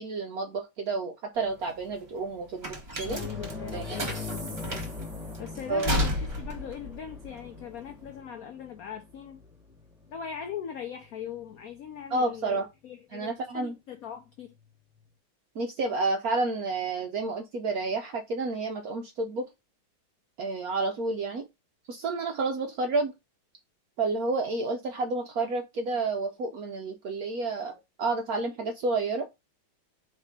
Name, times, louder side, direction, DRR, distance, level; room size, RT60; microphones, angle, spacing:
voice 1, 0.0-3.3 3.7-4.1 5.7-5.9 12.1-12.7 13.1-13.7 15.6-19.5 20.4-21.5 21.9-23.1 24.0-29.3, right 3 dB, 70° right, 0.8 m, -30 dB
sound 1, 1.4-8.1, equal, 25° right, 1.2 m, -33 dB
sound 2, 3.0-12.0 12.3-12.5 14.6-14.7, left 4 dB, ahead, 1.1 m, -42 dB
voice 2, 3.1-4.8 5.4-9.4 10.1-14.5, left 8 dB, 85° left, 0.7 m, -40 dB
4.6 x 3.3 x 3.5 m
omnidirectional pair, 2.2 m